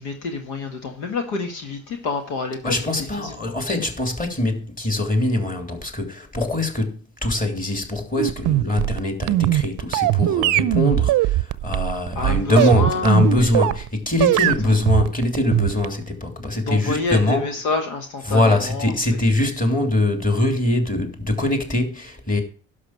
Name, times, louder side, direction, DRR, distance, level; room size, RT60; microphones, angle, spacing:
voice 1, 0.0-2.7 3.2-3.5 12.1-13.5 14.4-14.5 16.7-18.9, left 4 dB, 75° left, 1.7 m, -28 dB
voice 2, 2.6-17.5 18.3-22.4, left 2 dB, 20° left, 3.1 m, -22 dB
sound 1, 8.2-13.9 14.2-16.0, right 15 dB, 50° right, 0.6 m, -20 dB
11.5 x 6.0 x 6.0 m
hypercardioid pair, 60°, 39 cm